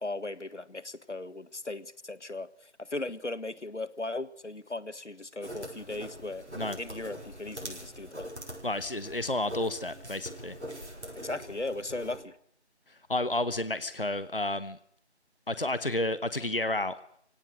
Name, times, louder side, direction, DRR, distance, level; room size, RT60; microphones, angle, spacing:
voice 1, 0.0-6.4 6.8-8.3 11.1-12.4, left 2 dB, 85° left, 16 dB, 1.5 m, -37 dB
sound 1, 5.4-12.2, equal, 75° right, 8.0 m, -43 dB
voice 2, 8.6-10.6 13.1-14.8 15.5-17.0, left 2 dB, 50° left, 14 dB, 1.0 m, -31 dB
25.0 x 17.5 x 6.6 m, 0.65 s
figure-of-eight pair, 180°, 35 cm